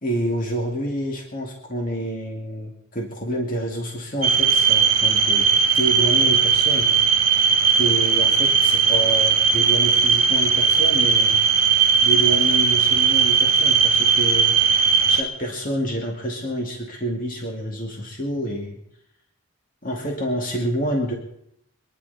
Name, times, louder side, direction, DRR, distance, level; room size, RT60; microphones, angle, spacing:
voice 1, 0.0-6.9 7.7-11.4 12.0-14.6 15.1-18.8 19.8-21.1, right 1 dB, 40° left, 0 dB, 2.4 m, -28 dB
sound 1, 4.2-15.2, right 6 dB, 45° right, 2.6 m, -18 dB
27.0 x 11.0 x 4.2 m, 0.75 s
head